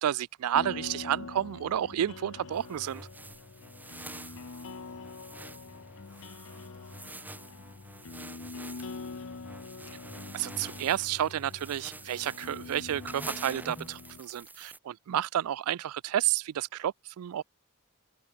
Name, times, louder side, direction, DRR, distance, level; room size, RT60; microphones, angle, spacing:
voice 1, 0.0-3.1 10.3-17.4, right 11 dB, 75° right, 0.3 m, -31 dB
sound 1, 0.5-14.2, left 4 dB, 60° left, 0.7 m, -44 dB
sound 2, 2.3-3.1 3.9-5.2 6.0-7.5, left 3 dB, 15° left, 1.2 m, -63 dB
sound 3, 2.5-14.8, right 2 dB, 10° right, 1.3 m, -47 dB
voice 2, 3.4-9.2, left 3 dB, 90° left, 4.0 m, -68 dB
open air
head